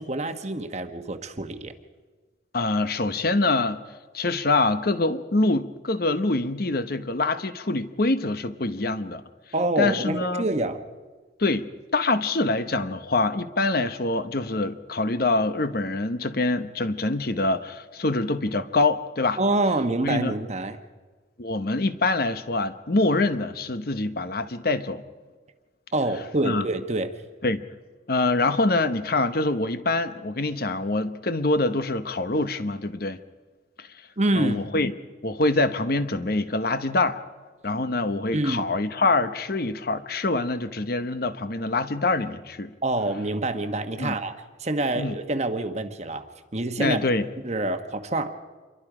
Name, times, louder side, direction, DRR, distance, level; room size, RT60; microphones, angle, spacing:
voice 1, 0.0-1.7 9.5-10.8 19.4-20.8 25.9-27.1 34.2-34.6 38.3-38.6 42.8-44.3 44.6-46.3 46.5-47.0 47.4-48.3, right 2 dB, 35° right, 8 dB, 1.2 m, -26 dB
voice 2, 2.5-3.8 4.1-9.2 9.8-10.4 11.4-19.4 20.0-20.3 21.4-25.0 26.4-26.7 27.4-27.6 28.1-33.2 33.8-33.9 34.3-34.9 35.2-37.2 37.6-42.7 44.0-44.2 45.0-45.1 46.8-47.3, left 2 dB, 50° left, 11 dB, 1.0 m, -25 dB
27.0 x 23.0 x 5.0 m, 1.4 s
head